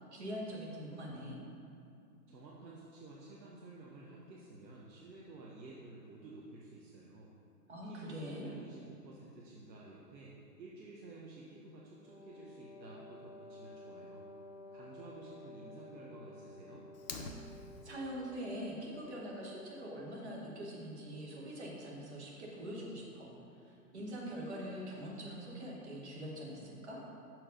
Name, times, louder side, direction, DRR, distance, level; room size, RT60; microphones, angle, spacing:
voice 1, 0.1-1.4 7.7-8.5 17.8-23.3 23.6-27.0, equal, 40° right, -3 dB, 1.3 m, -43 dB
voice 2, 2.3-7.3 7.8-14.3 14.7-16.9, right 2 dB, 90° right, -4 dB, 1.1 m, -52 dB
Wind instrument woodwind instrument, 12.0-20.2, left 1 dB, ahead, 1.4 m, -53 dB
Fire, 16.9-17.9, left 3 dB, 60° left, 0.7 m, -45 dB
6.0 x 4.7 x 5.1 m, 2.5 s
hypercardioid pair, 180°, 50 cm